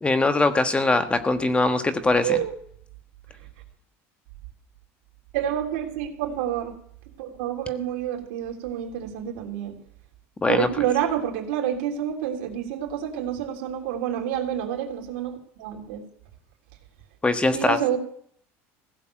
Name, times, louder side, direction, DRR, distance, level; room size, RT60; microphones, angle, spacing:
voice 1, 0.0-2.4 10.4-10.7 17.2-17.8, left 3 dB, 15° left, 9 dB, 1.3 m, -21 dB
voice 2, 5.3-6.7 7.2-9.8 10.5-16.0 17.5-18.0, right 10 dB, 80° right, 2 dB, 3.2 m, -28 dB
16.0 x 7.0 x 8.9 m, 0.63 s
supercardioid pair, 110°, 7 cm